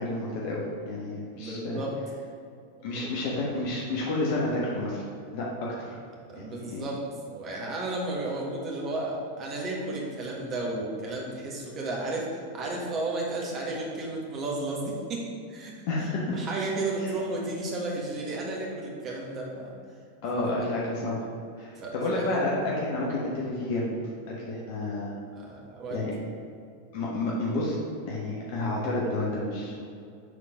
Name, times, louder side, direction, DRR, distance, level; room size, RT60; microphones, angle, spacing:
voice 1, 0.0-1.8 2.8-5.0 5.3-5.5 5.8-6.0 6.4-6.9 15.9-16.4 17.0-17.1 20.2-21.2 21.6-23.9 24.3-25.1 25.9-26.1 26.9-27.8 28.1-29.7, left 2 dB, 50° left, -5 dB, 1.2 m, -30 dB
voice 2, 1.3-1.9 3.0-3.1 6.3-7.0 7.3-15.7 16.3-19.7 20.3-20.4 21.7-22.5 25.3-26.0, right 2 dB, 30° right, -3 dB, 1.4 m, -33 dB
6.4 x 3.9 x 5.1 m, 2.4 s
figure-of-eight pair, 90°, 0 cm